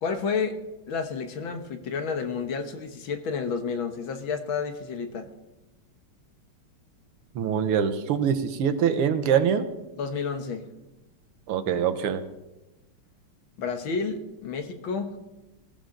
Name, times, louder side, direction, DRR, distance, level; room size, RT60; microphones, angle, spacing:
voice 1, 0.0-0.6 0.9-5.3 10.0-10.7 13.6-15.2, left 5 dB, 65° left, 7 dB, 1.9 m, -30 dB
voice 2, 7.4-9.7 11.5-12.2, right 8 dB, 80° right, 9 dB, 1.9 m, -24 dB
21.5 x 14.0 x 3.8 m, 1.0 s
omnidirectional pair, 2.4 m